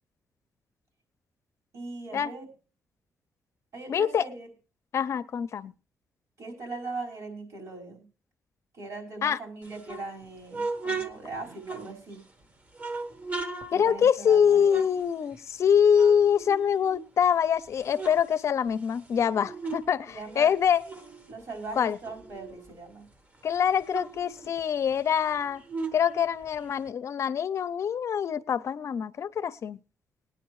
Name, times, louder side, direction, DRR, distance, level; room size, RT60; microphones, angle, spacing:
voice 1, 1.7-2.4 3.7-4.5 6.4-8.1 8.7-12.2 13.7-14.8 20.1-20.5 21.3-23.1, right 3 dB, 65° right, 5.0 m, -40 dB
voice 2, 3.9-4.3 4.9-5.7 9.2-9.4 13.7-20.8 21.8-22.0 23.4-25.6 25.9-29.8, left 8 dB, 55° left, 0.6 m, -24 dB
sound 1, 9.6-12.3 12.7-15.6 15.9-17.3 17.6-19.9 20.2-22.8 23.1-23.2 23.5-26.9, right 3 dB, 30° right, 1.1 m, -38 dB
20.0 x 9.8 x 3.1 m
cardioid pair, 115°, 6 cm